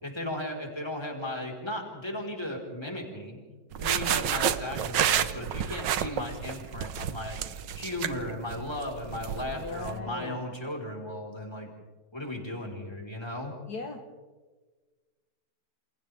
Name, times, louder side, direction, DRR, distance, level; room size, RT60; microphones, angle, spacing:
voice 1, 0.0-3.4 3.8-7.4 7.7-11.7 12.1-13.5, left 1 dB, 15° left, -1 dB, 4.6 m, -36 dB
sound 1, 3.7-10.0, right 9 dB, 80° right, 1.6 m, -30 dB
voice 2, 9.5-10.4 13.7-14.0, left 4 dB, 60° left, 3 dB, 1.9 m, -38 dB
29.0 x 28.0 x 3.6 m, 1.4 s
omnidirectional pair, 1.9 m